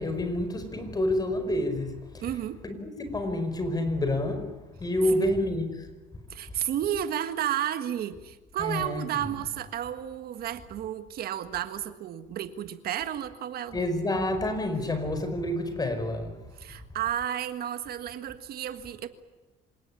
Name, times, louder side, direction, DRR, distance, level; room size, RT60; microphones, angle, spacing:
voice 1, 0.0-2.3 2.6-4.5 4.8-5.9 8.6-9.3 13.7-16.4, left 1 dB, 25° left, 5.0 m, -28 dB
voice 2, 2.2-2.6 5.1-5.3 6.3-13.8 16.6-19.1, right 10 dB, 65° right, 1.6 m, -32 dB
26.5 x 18.5 x 9.9 m
cardioid pair, 110°, 17 cm